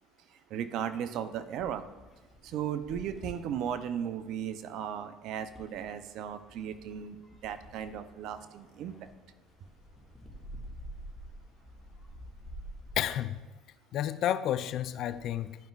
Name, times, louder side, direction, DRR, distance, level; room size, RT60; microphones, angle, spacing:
voice 1, 0.5-1.9 2.4-7.2 7.4-8.9, right 9 dB, 65° right, 0.5 m, -36 dB
sound 1, 1.0-13.0, equal, 15° left, 1.7 m, -50 dB
voice 2, 13.0-13.4 13.9-15.5, left 11 dB, 60° left, 0.4 m, -30 dB
11.5 x 5.2 x 2.4 m
supercardioid pair, 85°, 0 cm